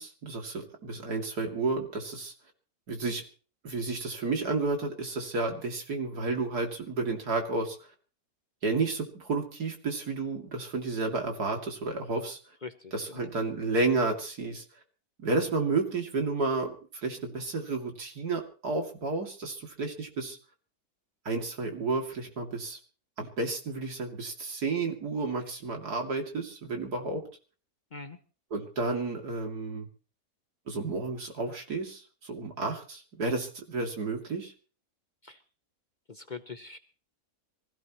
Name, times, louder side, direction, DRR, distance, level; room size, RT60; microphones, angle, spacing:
voice 1, 0.0-2.3 2.9-3.2 3.6-7.8 8.6-12.4 12.9-14.6 15.2-16.8 17.0-20.4 21.2-22.8 23.2-27.2 28.5-29.9 30.7-34.5, right 3 dB, 90° right, 3 dB, 3.2 m, -31 dB
voice 2, 12.6-13.3 27.9-28.2 35.2-35.4 36.1-36.8, left 4 dB, 40° left, 9 dB, 0.8 m, -43 dB
24.5 x 16.0 x 3.1 m, 0.37 s
omnidirectional pair, 1.6 m